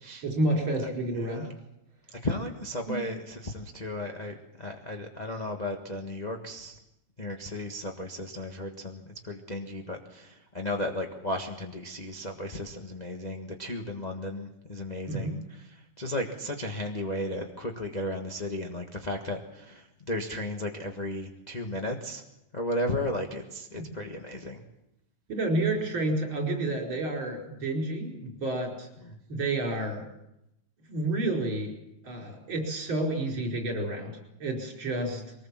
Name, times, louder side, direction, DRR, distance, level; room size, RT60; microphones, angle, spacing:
voice 1, 0.2-1.5 2.9-3.0 15.1-15.4 23.7-23.9 25.3-28.9 29.3-30.0 30.9-31.7 32.0-34.1 34.4-35.2, right 2 dB, 40° right, 0 dB, 5.7 m, -30 dB
voice 2, 1.2-1.5 2.2-6.8 7.2-15.4 16.0-22.2 22.5-24.6 35.0-35.2, left 1 dB, 25° left, 2 dB, 0.8 m, -34 dB
23.0 x 19.5 x 7.4 m, 0.85 s
omnidirectional pair, 3.4 m